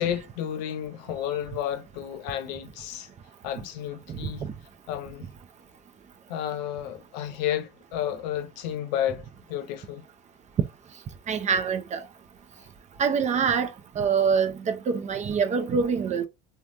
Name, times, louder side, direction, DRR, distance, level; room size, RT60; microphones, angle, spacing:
voice 1, 0.0-3.1 3.4-4.4 4.9-5.3 6.3-10.0, left 10 dB, 80° left, 0.7 m, -31 dB
voice 2, 4.1-4.5 11.3-12.0 13.0-13.7 14.0-16.3, right 6 dB, 35° right, 0.7 m, -25 dB
3.1 x 2.3 x 2.6 m
supercardioid pair, 90°, 21 cm